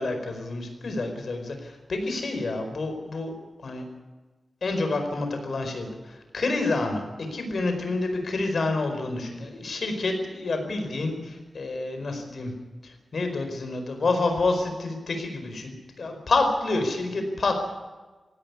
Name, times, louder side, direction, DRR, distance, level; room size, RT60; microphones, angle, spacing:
voice 1, 0.0-3.3 3.6-3.8 4.6-12.5 12.8-17.7, left 3 dB, 55° left, 5 dB, 4.8 m, -28 dB
18.0 x 16.5 x 9.6 m, 1.2 s
wide cardioid pair, 165°, 0 cm